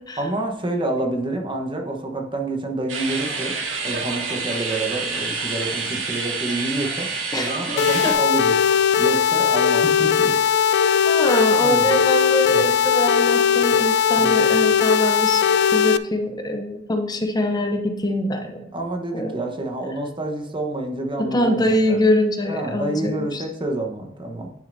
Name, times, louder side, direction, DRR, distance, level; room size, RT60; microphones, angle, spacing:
voice 1, 0.2-3.6 3.8-8.6 9.0-10.7 11.6-11.9 12.5-12.6 14.2-14.4 18.7-22.0 22.5-24.5, right 2 dB, 25° right, 3 dB, 1.1 m, -28 dB
sound 1, 2.9-8.1, right 4 dB, 80° right, 1.7 m, -28 dB
voice 2, 7.3-7.8 8.0-8.1 9.4-9.5 11.0-15.4 15.7-18.6 19.1-19.4 21.2-23.4, left 1 dB, 20° left, 5 dB, 0.6 m, -23 dB
sound 2, 7.8-16.0, left 7 dB, 60° left, 0.4 m, -18 dB
10.0 x 6.5 x 2.6 m, 0.91 s
head